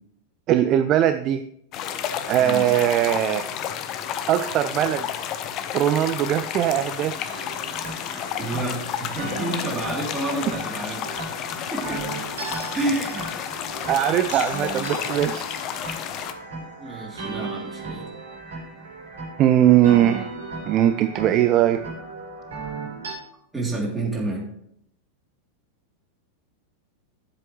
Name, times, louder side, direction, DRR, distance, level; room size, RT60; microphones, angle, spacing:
voice 1, 0.5-1.4 2.3-3.5 4.3-5.1 5.7-7.2 13.9-15.4 19.4-20.3 20.7-21.8, right 11 dB, 35° right, 10 dB, 0.4 m, -20 dB
sound 1, 1.7-16.3, left 9 dB, 35° left, 0.8 m, -31 dB
sound 2, 7.3-23.1, right 3 dB, 65° right, 3.5 m, -36 dB
voice 2, 8.4-12.1 12.7-13.3 16.6-18.1 23.5-24.5, right 2 dB, 10° right, -3 dB, 3.1 m, -30 dB
11.5 x 7.6 x 3.2 m, 0.71 s
figure-of-eight pair, 90°, 0 cm